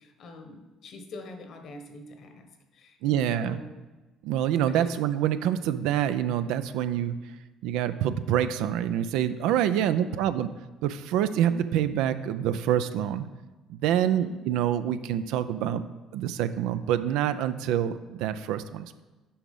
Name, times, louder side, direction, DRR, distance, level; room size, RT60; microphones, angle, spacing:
voice 1, 0.0-3.7 4.7-4.9 9.7-10.2 13.9-14.3, left 2 dB, 60° left, 6 dB, 1.3 m, -44 dB
voice 2, 3.0-3.6 4.2-7.1 7.6-10.5 10.8-13.3 13.7-15.8 16.1-19.0, right 10 dB, 80° right, 11 dB, 0.4 m, -26 dB
7.0 x 4.9 x 5.4 m, 1.2 s
supercardioid pair, 70°, 0 cm